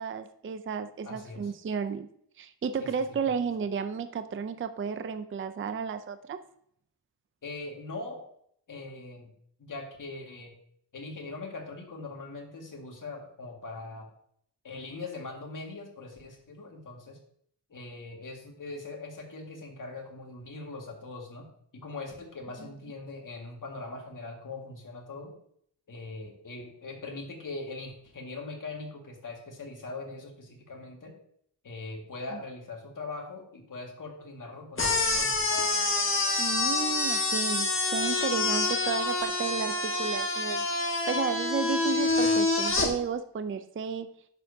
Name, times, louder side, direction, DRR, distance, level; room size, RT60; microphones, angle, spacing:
voice 1, 0.0-2.1 2.4-6.4 22.6-22.7 32.3-32.4 36.4-40.7 41.1-44.1, right 6 dB, 30° right, 10 dB, 0.4 m, -33 dB
voice 2, 1.0-1.5 2.8-2.9 3.3-3.4 7.4-8.2 8.7-9.3 9.6-10.5 10.9-14.1 14.6-17.2 17.7-21.5 21.7-25.3 25.9-31.1 31.6-35.5, left 3 dB, 45° left, 0 dB, 1.9 m, -41 dB
sound 1, 34.8-42.9, left 3 dB, 30° left, 1.4 m, -27 dB
10.5 x 6.9 x 2.7 m, 0.67 s
wide cardioid pair, 135°, 42 cm